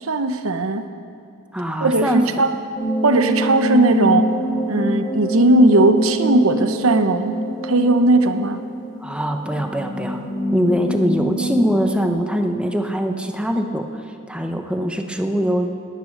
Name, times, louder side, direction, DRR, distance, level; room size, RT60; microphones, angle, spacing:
voice 1, 0.0-0.9 1.8-2.5 3.0-4.3 4.7-7.3 7.6-8.6, right 2 dB, 75° right, 9 dB, 0.9 m, -17 dB
voice 2, 1.5-2.3 9.0-10.2 10.5-14.0 14.3-15.7, equal, 5° right, 4 dB, 0.9 m, -22 dB
sound 1, 2.7-12.1, equal, 20° left, 2.8 m, -25 dB
18.0 x 10.5 x 6.6 m, 2.5 s
head